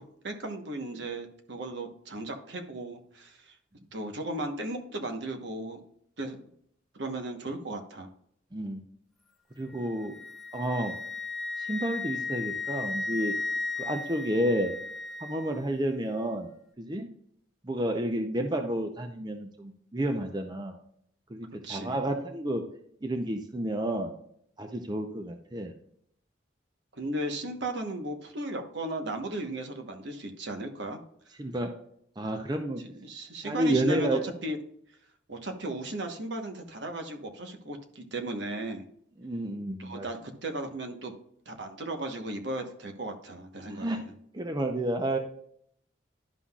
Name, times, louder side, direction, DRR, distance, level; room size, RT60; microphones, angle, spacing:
voice 1, 0.0-3.6 3.9-5.8 6.2-6.4 6.9-8.1 21.6-22.0 26.9-31.0 32.8-34.6 35.3-38.9 39.8-41.1 41.5-44.1, right 1 dB, 65° right, 4 dB, 1.2 m, -36 dB
voice 2, 8.5-8.8 9.6-10.2 10.5-10.9 11.6-13.3 13.8-14.7 15.2-16.5 16.8-17.1 17.6-20.8 21.3-22.6 23.0-24.1 24.6-25.7 31.4-31.7 32.2-32.8 33.4-34.2 39.2-40.1 43.7-44.0 44.3-45.2, right 1 dB, 20° right, 5 dB, 0.6 m, -30 dB
Wind instrument woodwind instrument, 9.7-15.7, left 3 dB, ahead, 1.0 m, -35 dB
11.5 x 5.6 x 2.4 m, 0.68 s
head